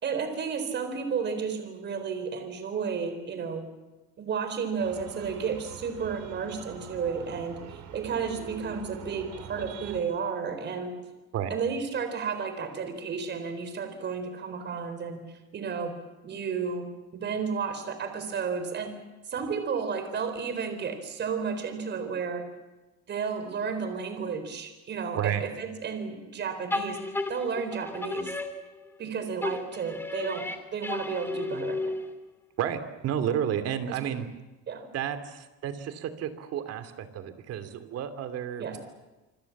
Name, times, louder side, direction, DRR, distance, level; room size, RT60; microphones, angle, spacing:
voice 1, 0.0-3.7 4.2-11.0 11.5-15.2 15.5-16.0 16.2-19.0 19.3-22.5 23.1-28.3 29.0-31.9 33.9-34.0 34.7-34.9 38.6-38.8, right 6 dB, 35° right, 8 dB, 4.1 m, -32 dB
sound 1, 4.8-10.0, right 8 dB, 70° right, 4.7 m, -44 dB
sound 2, 26.7-29.1 29.4-32.3, left 2 dB, 5° left, 2.5 m, -33 dB
voice 2, 32.6-34.3 34.9-38.8, right 9 dB, 50° right, 10 dB, 2.8 m, -31 dB
27.0 x 26.0 x 7.3 m, 1.1 s
cardioid pair, 155°, 31 cm